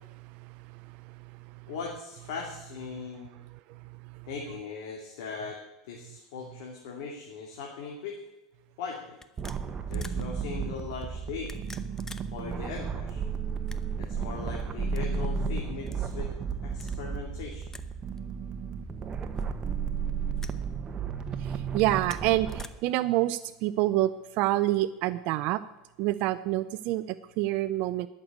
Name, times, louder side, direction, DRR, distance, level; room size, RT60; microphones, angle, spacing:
voice 1, 0.2-1.7 2.9-3.1 3.3-4.3 21.4-25.6 26.0-28.1, right 15 dB, 60° right, 0.5 m, -29 dB
voice 2, 1.7-3.4 4.3-5.6 5.9-8.2 8.8-9.2 9.9-11.6 12.3-13.2 14.0-16.3 16.6-17.8, left 5 dB, 75° left, 2.4 m, -39 dB
sound 1, 8.1-8.3 9.2-10.2 11.3-12.3 12.6-12.7 13.5-14.1 14.8-15.0 15.8-16.0 16.7-17.0 17.7-17.9 18.2-18.3 19.2-19.7 20.4-20.6 21.7-22.7, left 3 dB, 15° left, 0.8 m, -48 dB
sound 2, 9.4-22.6, right 6 dB, 30° right, 1.2 m, -33 dB
12.0 x 6.7 x 9.3 m
supercardioid pair, 100°, 3 cm